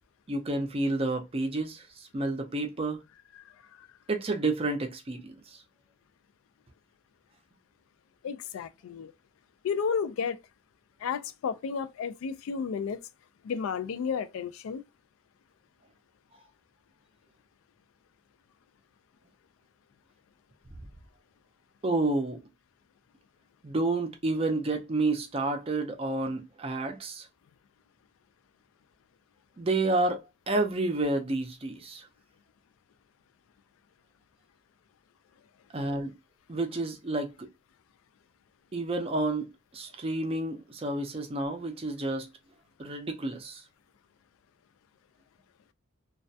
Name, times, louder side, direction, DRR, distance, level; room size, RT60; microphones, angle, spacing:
voice 1, 0.3-1.8 2.1-3.0 4.1-5.3 21.8-22.4 23.6-27.3 29.6-30.2 30.5-32.0 35.7-36.1 36.5-37.5 38.7-39.4 39.7-42.3 42.8-43.6, right 2 dB, 30° right, 0.4 m, -29 dB
voice 2, 8.2-9.1 9.6-10.4 11.0-13.0 13.4-14.8, left 6 dB, 80° left, 0.3 m, -32 dB
2.3 x 2.1 x 2.6 m
head